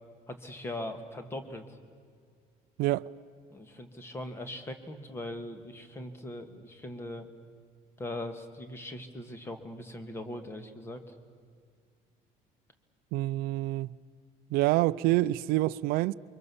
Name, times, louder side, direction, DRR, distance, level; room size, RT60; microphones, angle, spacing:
voice 1, 0.3-1.8 3.5-7.3 8.0-11.1, left 1 dB, 15° left, 1.7 m, -40 dB
voice 2, 2.8-3.1 13.1-14.0 14.5-16.1, right 17 dB, 75° right, 0.6 m, -27 dB
28.5 x 24.0 x 7.1 m
cardioid pair, 180°, 16 cm